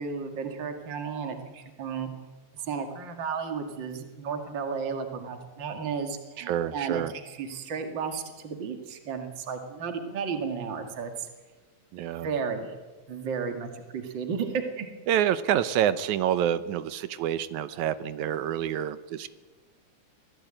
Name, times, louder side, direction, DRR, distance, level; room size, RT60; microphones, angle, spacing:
voice 1, 0.0-2.1 2.5-11.3 12.2-12.8 13.1-14.9, right 6 dB, 40° right, 5 dB, 2.6 m, -33 dB
voice 2, 6.5-7.1 11.9-12.3 15.1-19.3, right 10 dB, 80° right, 14 dB, 2.3 m, -27 dB
25.0 x 17.0 x 9.0 m, 1.3 s
omnidirectional pair, 3.4 m